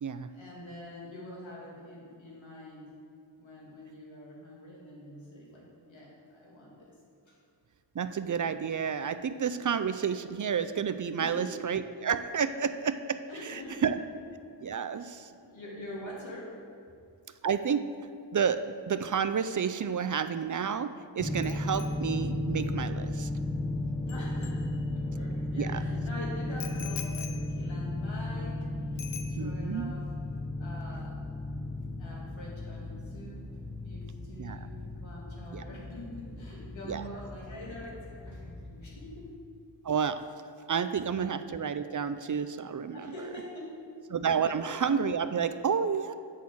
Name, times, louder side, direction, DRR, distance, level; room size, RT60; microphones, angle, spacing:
voice 1, 0.3-2.9 3.4-6.9 7.3-7.4 11.2-11.6 12.4-12.5 13.3-13.9 14.9-16.5 24.1-28.6 29.1-30.0 30.6-31.2 32.0-33.4 33.8-39.3 41.2-41.3 42.9-43.8 44.6-44.8, left 1 dB, 85° left, -5 dB, 2.7 m, -45 dB
voice 2, 7.9-13.2 13.4-14.0 14.6-15.3 17.4-17.8 18.3-18.6 18.9-23.3 25.6-25.8 29.4-30.0 34.4-34.6 35.5-35.6 36.9-37.0 39.8-40.2 40.7-43.1 44.1-46.1, right 7 dB, 45° right, 11 dB, 0.4 m, -30 dB
sound 1, 21.2-39.3, left 1 dB, 5° left, 0.6 m, -35 dB
Bicycle bell, 21.4-25.3 26.6-28.6 29.0-29.9 30.1-30.4, left 8 dB, 70° left, 0.7 m, -46 dB
8.3 x 6.2 x 7.1 m, 2.5 s
wide cardioid pair, 85°, 45 cm